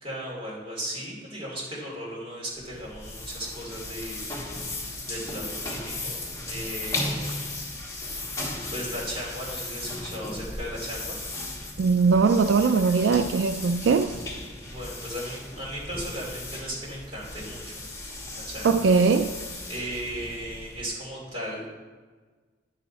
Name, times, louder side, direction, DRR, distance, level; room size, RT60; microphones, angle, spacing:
voice 1, 0.0-4.3 5.0-6.2 6.5-7.4 8.7-11.2 14.6-17.8 18.3-18.8 19.7-21.7, equal, 30° right, -6 dB, 2.9 m, -36 dB
sound 1, 2.5-21.0, left 2 dB, 15° left, 1.4 m, -36 dB
voice 2, 11.8-14.2 18.6-19.3, right 4 dB, 80° right, 9 dB, 0.3 m, -21 dB
10.5 x 6.5 x 4.1 m, 1.4 s
head